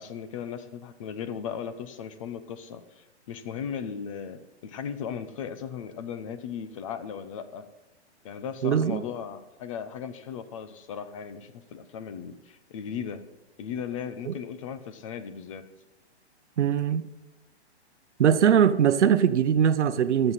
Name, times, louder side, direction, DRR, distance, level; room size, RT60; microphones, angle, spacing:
voice 1, 0.0-7.7 8.2-13.2 13.6-15.6, left 7 dB, 30° left, 0.7 m, -37 dB
voice 2, 8.6-9.0 14.3-14.4 16.6-17.1 18.2-20.3, right 8 dB, 90° right, 0.8 m, -21 dB
23.5 x 8.0 x 4.1 m
hypercardioid pair, 160°, 34 cm